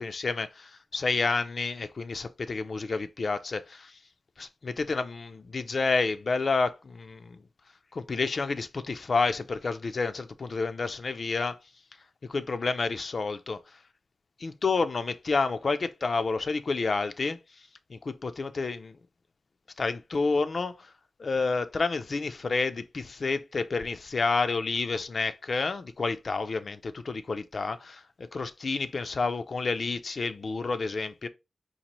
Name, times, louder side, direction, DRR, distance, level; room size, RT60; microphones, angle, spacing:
voice 1, 0.0-4.0 4.4-7.4 7.9-11.6 12.3-13.6 14.4-17.4 17.9-19.0 19.8-20.9 21.2-31.3, left 4 dB, 55° left, 0.3 m, -29 dB
4.1 x 2.5 x 2.9 m
wide cardioid pair, 100°, 0 cm